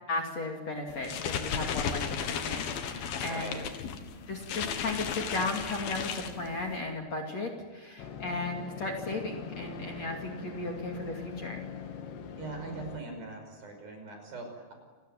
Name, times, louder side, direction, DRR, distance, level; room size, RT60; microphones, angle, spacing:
voice 1, 0.1-3.7 4.3-11.6, left 2 dB, 40° left, 1 dB, 3.5 m, -35 dB
sound 1, 0.9-6.8, left 7 dB, 65° left, 3.3 m, -35 dB
voice 2, 3.2-3.6 12.4-14.7, right 3 dB, 55° right, 4 dB, 7.2 m, -41 dB
sound 2, 8.0-13.0, left 6 dB, 80° left, 4.3 m, -42 dB
29.0 x 20.5 x 9.4 m, 1.4 s
omnidirectional pair, 5.0 m